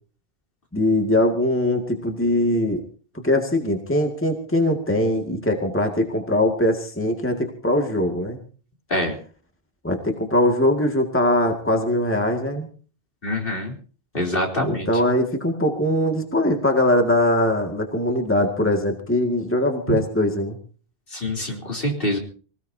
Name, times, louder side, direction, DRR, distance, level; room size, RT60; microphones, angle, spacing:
voice 1, 0.7-2.8 3.1-8.4 9.8-12.7 14.6-20.6, left 1 dB, 10° left, 3 dB, 2.1 m, -21 dB
voice 2, 13.2-13.7 14.1-14.9 19.9-20.0 21.1-22.2, left 1 dB, 60° left, 1 dB, 3.7 m, -25 dB
25.5 x 17.0 x 2.8 m, 0.40 s
omnidirectional pair, 1.1 m